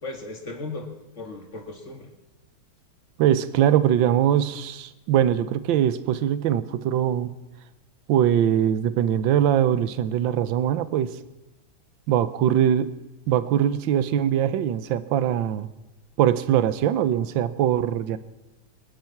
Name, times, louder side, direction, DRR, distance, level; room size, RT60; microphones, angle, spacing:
voice 1, 0.0-2.1, left 3 dB, 35° left, 3 dB, 2.4 m, -36 dB
voice 2, 3.2-7.3 8.1-11.1 12.1-12.9 13.3-15.7 16.2-18.2, right 10 dB, 70° right, 14 dB, 1.5 m, -22 dB
23.5 x 10.5 x 5.9 m, 1.0 s
omnidirectional pair, 2.3 m